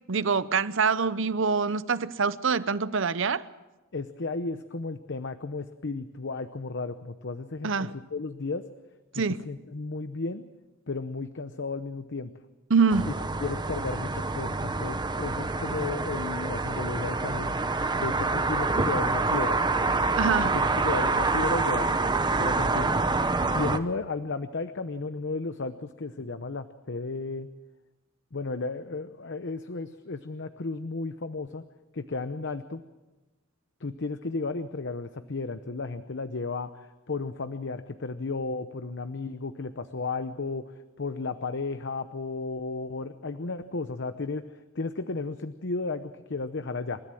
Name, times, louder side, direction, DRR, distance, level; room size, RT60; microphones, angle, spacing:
voice 1, 0.1-3.4 7.6-7.9 9.2-9.5 12.7-13.1 20.2-20.5, right 5 dB, 65° right, 0.8 m, -25 dB
voice 2, 3.9-8.7 9.1-10.4 10.9-12.3 13.1-13.2 13.4-17.5 18.0-19.6 20.5-21.9 22.4-23.0 23.5-27.5 28.3-31.6 31.9-32.8 33.8-40.6 41.0-44.5 44.7-47.0, left 3 dB, 60° left, 0.8 m, -34 dB
sound 1, 12.9-23.8, right 3 dB, 20° right, 0.9 m, -27 dB
28.5 x 14.0 x 7.6 m
head